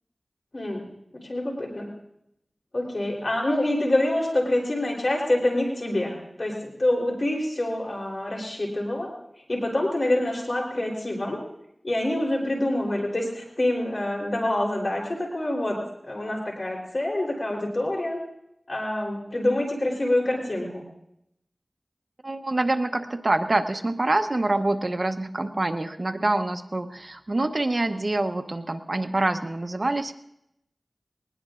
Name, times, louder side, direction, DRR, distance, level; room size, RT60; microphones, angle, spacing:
voice 1, 0.5-0.8 1.3-1.9 2.7-9.1 9.5-11.4 11.8-18.2 18.7-20.8, left 1 dB, 60° left, -2 dB, 3.7 m, -26 dB
voice 2, 22.2-30.1, right 2 dB, 50° right, 7 dB, 0.9 m, -26 dB
21.5 x 19.5 x 2.5 m, 0.80 s
wide cardioid pair, 65°, 0 cm